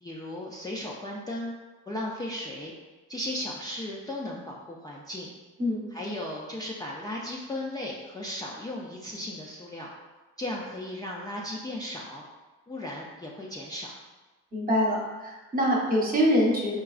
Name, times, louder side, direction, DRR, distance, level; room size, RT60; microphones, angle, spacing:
voice 1, 0.0-1.5 1.9-2.7 3.1-5.3 5.9-9.9 10.4-12.2 12.7-13.9, left 1 dB, 15° left, -4 dB, 0.4 m, -36 dB
voice 2, 14.5-16.8, equal, 30° right, -3 dB, 0.9 m, -24 dB
4.7 x 2.3 x 2.4 m, 1.2 s
cardioid pair, 90°, 30 cm